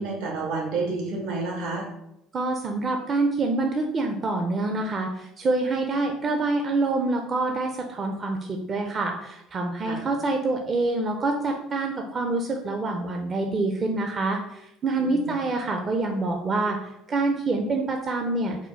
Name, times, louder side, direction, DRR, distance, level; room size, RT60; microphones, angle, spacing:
voice 1, 0.0-1.9 9.8-10.0 15.0-15.3, right 3 dB, 75° right, -1 dB, 1.2 m, -30 dB
voice 2, 2.3-18.6, right 2 dB, 40° right, 3 dB, 0.5 m, -26 dB
4.4 x 2.1 x 4.5 m, 0.85 s
supercardioid pair, 80°, 0 cm